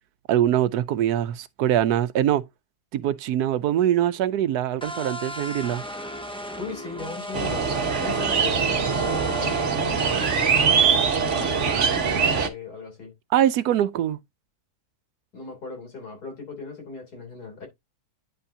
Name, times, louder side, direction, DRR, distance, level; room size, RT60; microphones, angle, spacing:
voice 1, 0.3-2.4 2.9-5.8 13.3-14.2, right 11 dB, 80° right, 1.1 m, -23 dB
sound 1, 4.8-10.7, equal, 5° left, 0.5 m, -36 dB
voice 2, 6.6-7.6 8.0-10.3 11.3-13.1 15.3-17.7, left 4 dB, 70° left, 3.8 m, -38 dB
sound 2, 7.3-12.5, right 6 dB, 50° right, 1.3 m, -22 dB
9.9 x 5.6 x 2.7 m
omnidirectional pair, 1.7 m